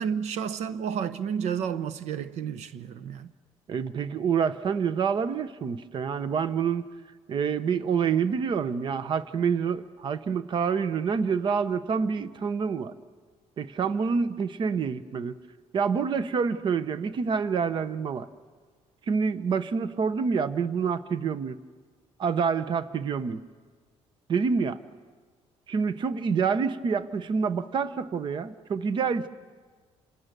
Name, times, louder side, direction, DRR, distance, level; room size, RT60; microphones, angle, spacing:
voice 1, 0.0-3.3, right 7 dB, 80° right, 0.9 m, -31 dB
voice 2, 3.7-6.8 7.3-12.9 13.6-15.3 15.7-18.3 19.1-21.6 22.2-23.4 24.3-24.8 25.7-29.3, right 6 dB, 45° right, 0.9 m, -27 dB
28.5 x 26.5 x 6.7 m
cardioid pair, 130°, 11 cm